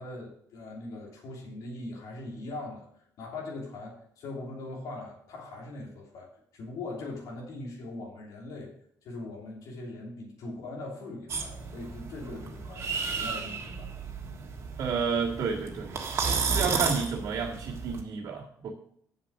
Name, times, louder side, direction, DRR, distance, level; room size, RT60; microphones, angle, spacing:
voice 1, 0.0-2.9 3.2-8.7 9.0-13.9, left 2 dB, 75° left, -1 dB, 3.0 m, -41 dB
sound 1, 11.3-18.0, right 5 dB, 50° right, 1.6 m, -33 dB
voice 2, 14.8-16.0 16.4-18.7, right 5 dB, 70° right, -5 dB, 1.8 m, -31 dB
7.4 x 7.1 x 6.3 m, 0.68 s
cardioid pair, 115°, 6 cm